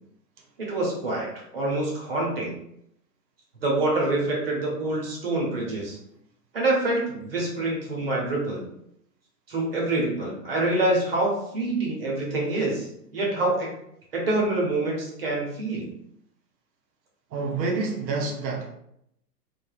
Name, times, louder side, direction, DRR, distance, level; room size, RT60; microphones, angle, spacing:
voice 1, 0.6-1.3 1.5-2.5 3.6-6.0 6.5-8.6 9.5-12.9 13.1-13.7 14.1-15.9, right 2 dB, 35° right, -2 dB, 0.7 m, -26 dB
voice 2, 17.3-18.7, right 3 dB, 90° right, -1 dB, 0.8 m, -28 dB
3.2 x 2.2 x 2.3 m, 0.75 s
hypercardioid pair, 170°, 49 cm